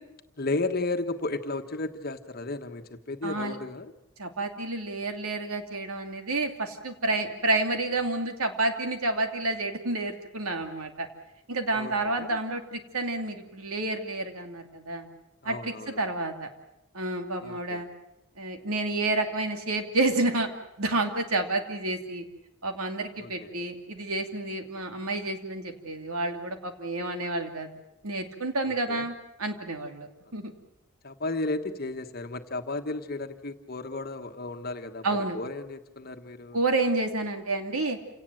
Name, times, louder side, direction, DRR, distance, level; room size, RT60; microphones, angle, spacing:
voice 1, 0.4-3.9 11.7-12.4 15.4-16.0 17.4-17.8 23.2-23.5 28.6-29.1 31.0-36.6, left 2 dB, 45° left, 7 dB, 1.3 m, -34 dB
voice 2, 3.2-3.6 4.2-11.1 11.5-15.1 15.4-16.5 16.9-17.9 18.4-20.5 20.8-22.2 22.6-27.7 28.0-29.1 29.4-30.5 35.0-35.4 36.5-38.0, right 2 dB, 85° right, 5 dB, 2.7 m, -29 dB
28.5 x 18.0 x 7.7 m, 0.87 s
head